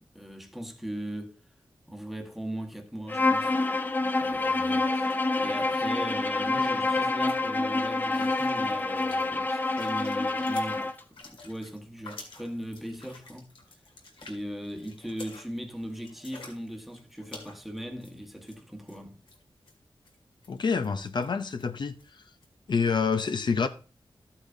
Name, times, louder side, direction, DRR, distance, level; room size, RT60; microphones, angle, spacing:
voice 1, 0.1-1.3 1.9-3.6 4.2-13.6 14.2-19.2, equal, ahead, 1.2 m, -39 dB
Bowed string instrument, 3.1-11.0, left 2 dB, 20° left, 0.6 m, -27 dB
sound 1, 7.3-7.5 8.1-18.6 18.9-19.0 19.3-19.7 20.0-20.2 20.4-20.5 20.8-20.9 21.2-21.3 21.6-21.7 22.0-22.1 22.4-22.5, left 3 dB, 85° left, 2.1 m, -49 dB
voice 2, 20.5-21.9 22.7-23.7, left 5 dB, 60° left, 0.6 m, -27 dB
13.0 x 8.5 x 2.7 m
wide cardioid pair, 130°, 9 cm